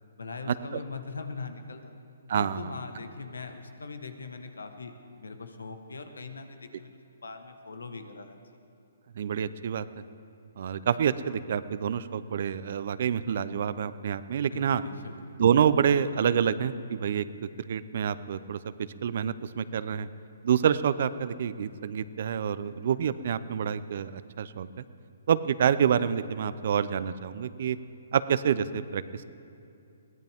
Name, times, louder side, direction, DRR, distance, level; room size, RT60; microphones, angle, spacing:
voice 1, 0.2-1.9 2.3-6.9 7.2-8.6 14.5-15.4, left 4 dB, 90° left, 7 dB, 1.4 m, -41 dB
voice 2, 2.3-2.7 9.2-9.9 10.6-14.8 15.4-17.3 17.6-20.1 20.4-24.7 25.3-27.8 28.1-29.3, right 8 dB, 55° right, 15 dB, 0.7 m, -27 dB
22.0 x 17.5 x 3.6 m, 2.7 s
hypercardioid pair, 140°, 0 cm